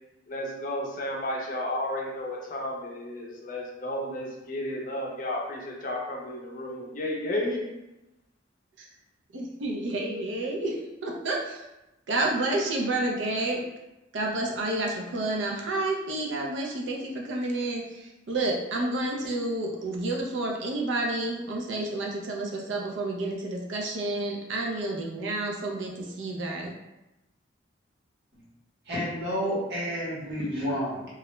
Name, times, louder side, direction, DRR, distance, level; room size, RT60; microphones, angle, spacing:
voice 1, 0.3-7.7, left 1 dB, 45° left, -2 dB, 0.5 m, -32 dB
voice 2, 9.3-11.6 12.1-13.6 14.1-26.7, right 2 dB, 75° right, -1 dB, 0.5 m, -30 dB
voice 3, 28.9-31.1, equal, 60° right, -7 dB, 1.0 m, -30 dB
2.3 x 2.1 x 3.0 m, 0.97 s
head